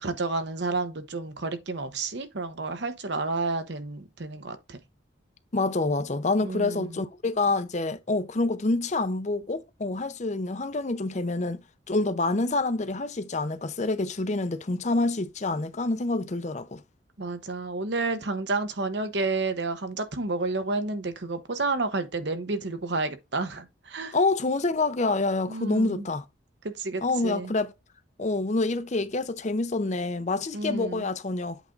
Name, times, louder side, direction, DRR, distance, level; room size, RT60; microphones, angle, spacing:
voice 1, 0.0-4.8 6.4-7.0 17.2-24.2 25.5-26.1 26.6-27.6 30.5-31.0, right 3 dB, 65° right, 1.0 m, -30 dB
voice 2, 5.5-11.6 11.9-16.8 24.1-26.2 27.0-27.7 28.2-31.6, left 2 dB, 40° left, 0.6 m, -27 dB
8.3 x 3.6 x 3.8 m
head